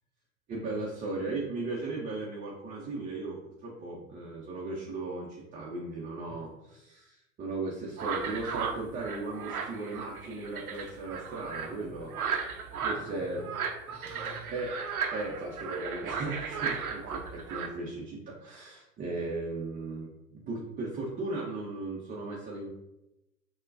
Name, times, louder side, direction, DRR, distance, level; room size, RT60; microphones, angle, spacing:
voice 1, 0.5-12.1 12.8-13.4 14.5-14.7 15.1-22.7, right 2 dB, 20° right, -5 dB, 0.6 m, -37 dB
sound 1, 8.0-17.7, right 6 dB, 80° right, 0.7 m, -35 dB
voice 2, 11.6-14.5, equal, 10° left, -4 dB, 1.0 m, -50 dB
6.4 x 2.2 x 2.5 m, 0.93 s
figure-of-eight pair, 90°, 43 cm